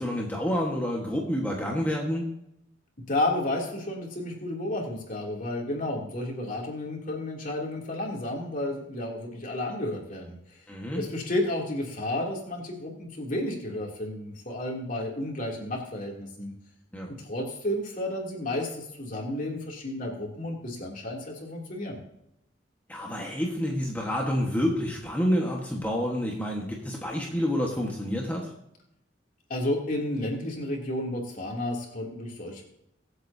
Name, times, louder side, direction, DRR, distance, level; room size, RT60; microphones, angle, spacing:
voice 1, 0.0-2.2 10.7-11.0 16.9-17.1 22.9-28.5, equal, 10° left, -2 dB, 1.4 m, -28 dB
voice 2, 3.1-10.6 10.9-16.5 17.1-22.0 29.5-32.6, left 1 dB, 45° left, -1 dB, 2.9 m, -32 dB
24.0 x 8.0 x 2.8 m, 0.81 s
head